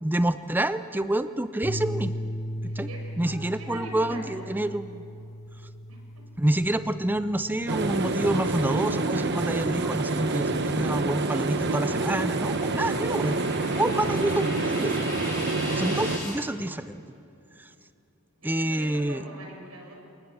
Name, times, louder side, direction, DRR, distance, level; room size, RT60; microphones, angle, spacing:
voice 1, 0.0-2.1 2.6-2.9 3.2-5.0 6.4-13.4 13.6-15.1 15.4-17.0 17.6-17.7 18.4-19.2, right 1 dB, 10° right, 12 dB, 0.5 m, -28 dB
sound 1, 1.6-10.0, equal, 30° left, 2.0 m, -38 dB
voice 2, 2.7-4.5 5.9-6.2 18.4-19.9, right 1 dB, 85° right, 1 dB, 6.2 m, -43 dB
sound 2, 7.7-16.2, right 3 dB, 50° right, 1.0 m, -27 dB
sound 3, 9.8-16.3, left 2 dB, 15° left, 6.2 m, -40 dB
27.5 x 20.0 x 7.1 m, 2.6 s
head